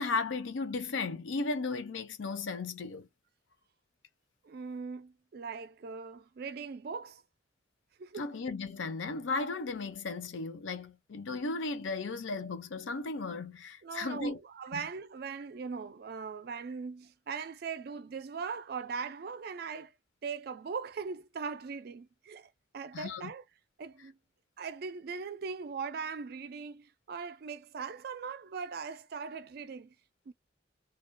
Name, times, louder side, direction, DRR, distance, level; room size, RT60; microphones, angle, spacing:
voice 1, 0.0-3.1 8.2-14.4 14.7-14.9 22.9-23.3, left 3 dB, 85° left, 0.5 m, -35 dB
voice 2, 4.4-7.2 8.0-8.3 13.8-19.9 20.2-23.4 23.8-24.2 24.6-29.9 30.3-30.4, right 5 dB, 55° right, 0.3 m, -40 dB
2.3 x 2.2 x 2.5 m
head